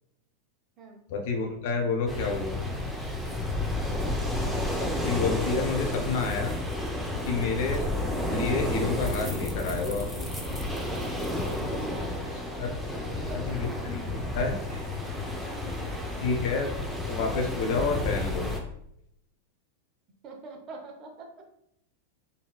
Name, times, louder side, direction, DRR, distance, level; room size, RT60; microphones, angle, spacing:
voice 1, 1.1-2.6 4.8-6.6 7.2-7.9 8.3-10.1 12.6-12.7 13.5-14.6 16.2-16.7 17.0-18.5, left 4 dB, 50° left, 3 dB, 0.7 m, -29 dB
sound 1, 2.1-18.6, left 1 dB, ahead, 0.6 m, -31 dB
sound 2, 8.5-16.3, left 3 dB, 85° left, 1.0 m, -45 dB
voice 2, 11.6-12.2 13.3-13.7 16.1-16.3 20.2-21.4, right 3 dB, 35° right, 2 dB, 0.8 m, -45 dB
4.1 x 3.5 x 2.3 m, 0.74 s
figure-of-eight pair, 90°, 0 cm